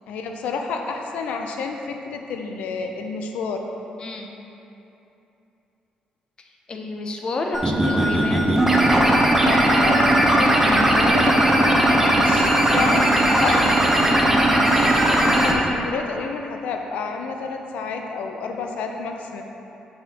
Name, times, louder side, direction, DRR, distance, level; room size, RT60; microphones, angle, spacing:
voice 1, 0.1-3.6 9.5-13.1 13.4-13.6 15.2-19.4, left 4 dB, 90° left, 3 dB, 0.5 m, -30 dB
voice 2, 4.0-4.3 6.4-8.6 13.4-14.0, left 2 dB, 40° left, 2 dB, 0.6 m, -30 dB
sound 1, 7.5-15.5, right 1 dB, 15° right, 0.7 m, -18 dB
7.3 x 5.9 x 2.9 m, 2.9 s
cardioid pair, 125°, 2 cm